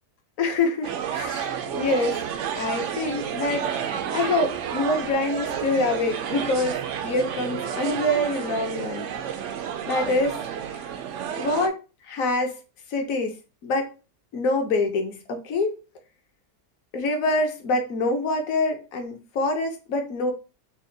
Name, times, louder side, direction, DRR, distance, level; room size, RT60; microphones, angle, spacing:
voice 1, 0.4-2.2 2.5-9.0 9.9-10.4 11.4-11.8 12.1-12.6 12.9-13.4 13.6-13.9 14.3-15.8 16.9-20.3, left 2 dB, 60° left, 1.1 m, -25 dB
sound 1, 0.8-11.7, right 8 dB, 70° right, 0.7 m, -30 dB
4.3 x 2.2 x 3.8 m
omnidirectional pair, 1.7 m